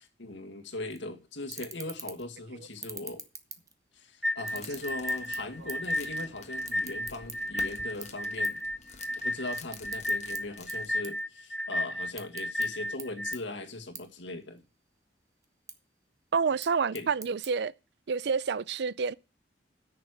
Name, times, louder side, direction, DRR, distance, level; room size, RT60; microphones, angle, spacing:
voice 1, 0.0-3.2 3.9-8.6 9.2-14.6 16.9-17.1, left 2 dB, 85° left, 1.9 m, -39 dB
sound 1, 0.9-1.0 1.4-2.3 2.7-4.0 4.4-6.0 6.2-7.6 8.0-8.2 8.4-8.6 9.0-10.4 10.7-11.7 12.0-12.7 13.0-13.1 13.3-13.4 14.0-14.1 14.4-15.0 15.4-15.7 16.4-17.5, right 5 dB, 20° right, 1.1 m, -43 dB
sound 2, 4.2-13.4, left 1 dB, ahead, 0.5 m, -33 dB
sound 3, 4.5-11.0, left 4 dB, 40° left, 1.4 m, -50 dB
voice 2, 16.3-17.7 18.1-19.2, right 5 dB, 65° right, 0.5 m, -28 dB
9.6 x 6.7 x 6.5 m
head